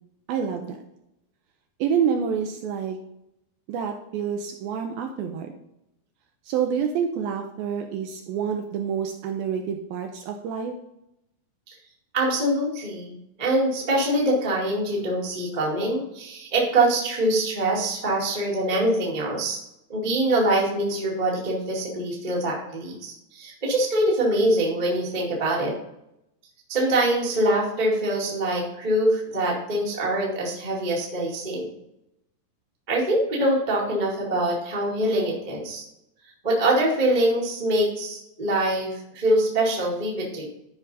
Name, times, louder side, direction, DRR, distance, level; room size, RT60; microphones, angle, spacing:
voice 1, 0.3-0.8 1.8-3.0 3.7-5.5 6.5-10.7, right 7 dB, 80° right, 4 dB, 2.2 m, -27 dB
voice 2, 12.1-19.6 19.9-25.7 26.7-31.7 32.9-35.8 36.4-40.5, right 1 dB, 30° right, -3 dB, 0.9 m, -24 dB
12.0 x 4.8 x 4.0 m, 0.83 s
omnidirectional pair, 4.7 m